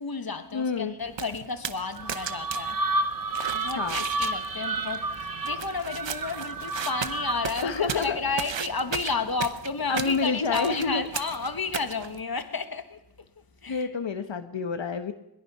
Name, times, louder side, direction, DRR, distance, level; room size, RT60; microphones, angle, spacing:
voice 1, 0.0-2.8 3.5-13.0 13.6-13.9, left 4 dB, 55° left, 1.7 m, -32 dB
voice 2, 0.5-0.9 3.8-4.0 7.6-8.2 9.9-11.1 13.7-15.1, left 5 dB, 90° left, 1.2 m, -28 dB
sound 1, 1.0-12.2, right 7 dB, 80° right, 0.9 m, -37 dB
sound 2, 2.0-7.7, right 2 dB, 50° right, 1.2 m, -31 dB
22.0 x 21.0 x 5.6 m
wide cardioid pair, 70°, 44 cm